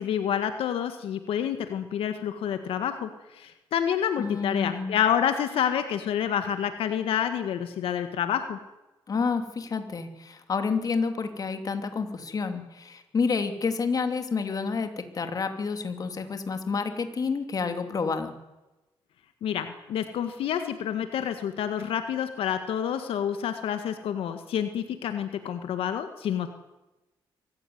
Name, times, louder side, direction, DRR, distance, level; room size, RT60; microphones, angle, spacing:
voice 1, 0.0-8.6 19.4-26.5, left 9 dB, 80° left, 8 dB, 1.8 m, -28 dB
voice 2, 4.2-5.0 9.1-18.3, left 5 dB, 40° left, 7 dB, 2.8 m, -29 dB
24.5 x 15.5 x 9.5 m, 1.0 s
cardioid pair, 110°, 9 cm